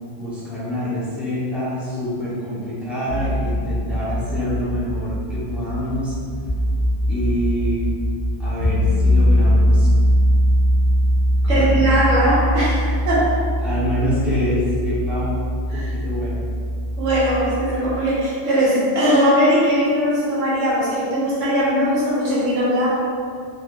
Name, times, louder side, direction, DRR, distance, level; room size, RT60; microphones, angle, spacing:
voice 1, 0.2-6.1 7.1-7.9 8.4-9.9 11.5-11.9 13.6-15.4 15.7-16.4, equal, ahead, -11 dB, 0.7 m, -26 dB
sound 1, 3.1-17.8, equal, 60° right, 0.7 m, -21 dB
voice 2, 11.5-13.4 15.7-15.9 17.0-23.0, equal, 85° right, -8 dB, 1.3 m, -19 dB
3.5 x 2.5 x 2.3 m, 2.2 s
omnidirectional pair, 1.3 m